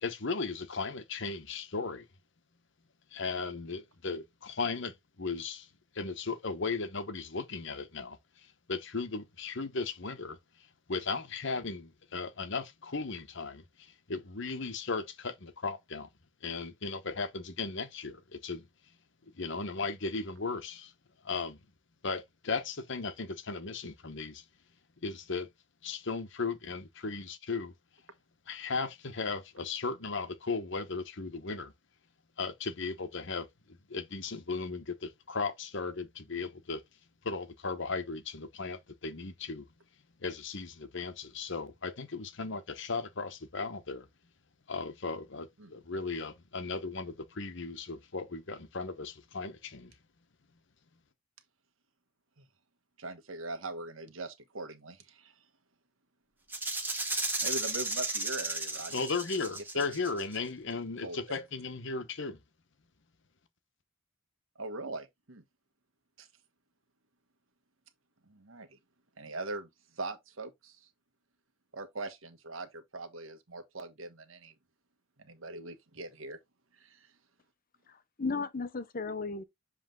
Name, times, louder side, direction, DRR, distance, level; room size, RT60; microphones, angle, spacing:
voice 1, 0.0-2.0 3.1-5.7 5.9-10.4 10.9-16.1 16.4-18.7 19.4-20.9 21.2-21.6 22.0-24.4 25.0-25.5 25.8-27.7 28.5-31.7 32.4-33.5 33.9-36.8 37.2-39.6 40.2-44.1 44.7-49.9 58.9-62.4, left 4 dB, 65° left, 1.0 m, -36 dB
voice 2, 53.0-55.3 57.4-58.9 59.7-59.9 61.0-61.4 64.6-65.4 66.2-66.3 68.3-68.8 69.2-69.7 69.9-70.9 71.7-74.5 75.2-76.4 76.8-77.1, right 2 dB, 80° right, 1.3 m, -41 dB
Rattle (instrument), 56.5-60.4, right 2 dB, 10° right, 1.4 m, -34 dB
voice 3, 77.9-79.4, left 4 dB, 45° left, 0.8 m, -35 dB
7.5 x 3.4 x 3.8 m
head